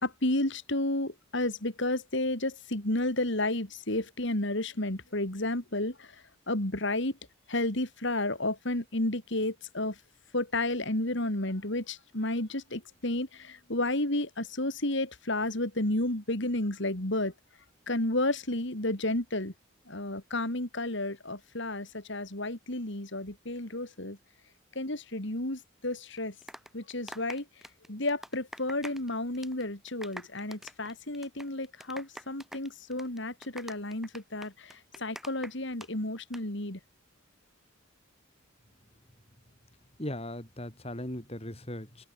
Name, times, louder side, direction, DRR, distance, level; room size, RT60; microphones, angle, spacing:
voice 1, 0.0-6.1 6.5-7.1 7.5-10.0 10.3-17.3 17.9-19.5 19.9-24.2 24.8-26.3 26.7-27.5 27.9-36.8, left 1 dB, 55° left, 3.4 m, -31 dB
sound 1, 26.2-29.1 29.3-29.6 29.9-35.9 36.2-36.4, equal, ahead, 2.5 m, -45 dB
voice 2, 40.0-42.0, left 1 dB, 30° left, 3.7 m, -38 dB
open air
head